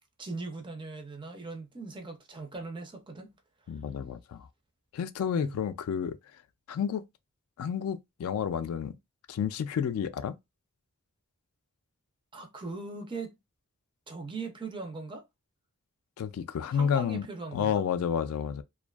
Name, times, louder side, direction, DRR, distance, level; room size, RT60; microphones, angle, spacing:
voice 1, 0.2-3.3 5.3-5.6 12.3-13.3 14.1-15.3 16.7-17.8, right 3 dB, 20° right, 0.4 m, -40 dB
voice 2, 3.7-4.5 4.9-6.2 6.7-7.0 7.6-8.9 9.3-10.4 16.2-17.3 17.5-18.6, left 7 dB, 70° left, 0.3 m, -30 dB
2.5 x 2.2 x 2.2 m
head